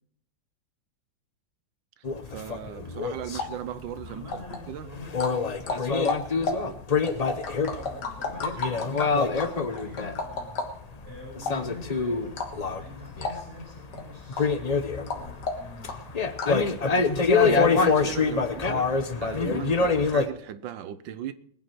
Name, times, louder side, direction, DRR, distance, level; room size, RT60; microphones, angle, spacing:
sound 1, 2.0-10.7 11.0-14.0 14.3-20.3, left 4 dB, 50° left, 0.4 m, -26 dB
voice 1, 2.3-4.3 4.7-4.9 6.6-6.8 16.9-21.3, right 10 dB, 80° right, 1.5 m, -37 dB
sound 2, 3.1-16.7, left 3 dB, 65° left, 2.1 m, -35 dB
voice 2, 4.0-5.8 6.3-6.6 7.7-10.6 11.0-16.3, left 2 dB, 65° right, 6.8 m, -45 dB
21.0 x 9.1 x 4.5 m
omnidirectional pair, 2.0 m